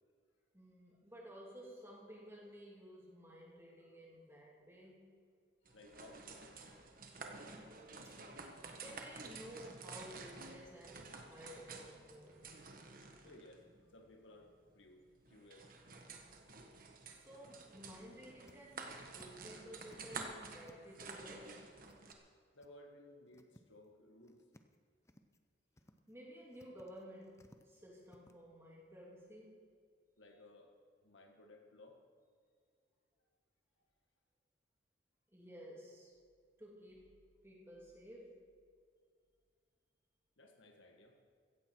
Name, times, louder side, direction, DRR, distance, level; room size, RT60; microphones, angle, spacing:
voice 1, 0.5-5.1 7.2-7.8 8.0-8.2 8.7-12.5 17.1-21.7 26.1-29.7 35.3-36.1 36.6-38.4, equal, 15° right, -3 dB, 2.6 m, -54 dB
voice 2, 5.6-6.7 13.2-15.7 22.5-24.5 25.8-25.9 30.2-30.7 31.0-32.0 40.4-41.2, left 1 dB, 75° left, 3 dB, 1.8 m, -60 dB
sound 1, 5.7-22.1, right 4 dB, 45° right, 1.5 m, -51 dB
sound 2, 16.7-16.8 17.2-17.3 17.6-17.7 18.0-19.5 19.8-21.1 21.8-22.3 22.6-22.7 23.1-23.9 24.2-24.8 25.0-25.5 25.7-26.1 26.5-28.4, left 1 dB, 15° left, 0.7 m, -65 dB
16.0 x 15.0 x 4.6 m, 2.1 s
head